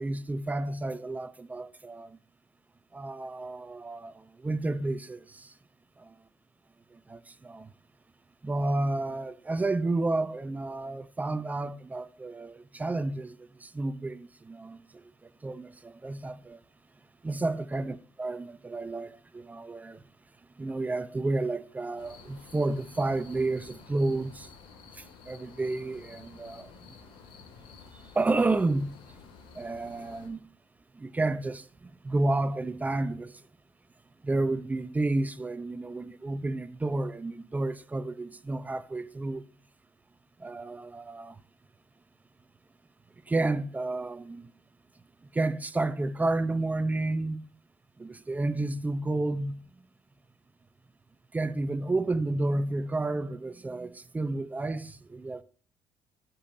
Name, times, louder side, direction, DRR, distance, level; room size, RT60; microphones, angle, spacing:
voice 1, 0.0-2.2 2.9-5.5 6.0-6.1 7.1-7.7 8.4-15.0 15.4-16.6 17.2-20.0 20.6-24.5 24.9-26.7 28.1-29.0 29.5-30.4 30.9-31.7 32.0-33.4 34.2-39.4 40.4-41.4 43.3-44.5 45.3-47.4 48.0-49.6 51.3-55.4, right 2 dB, 20° right, 0.8 m, -31 dB
sound 1, 22.0-30.3, left 5 dB, 70° left, 2.3 m, -51 dB
15.5 x 7.2 x 2.8 m
supercardioid pair, 85°, 9 cm